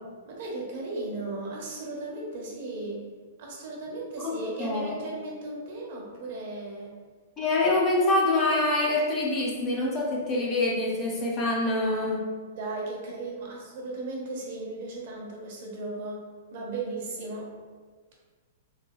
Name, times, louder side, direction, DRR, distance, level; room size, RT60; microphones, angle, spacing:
voice 1, 0.3-3.0 3.4-6.9 12.5-16.2 16.5-17.5, right 2 dB, 50° right, -3 dB, 0.8 m, -36 dB
voice 2, 4.6-5.0 7.4-12.3, left 2 dB, 20° left, -3 dB, 0.4 m, -25 dB
3.2 x 3.1 x 2.2 m, 1.5 s
supercardioid pair, 170°, 0 cm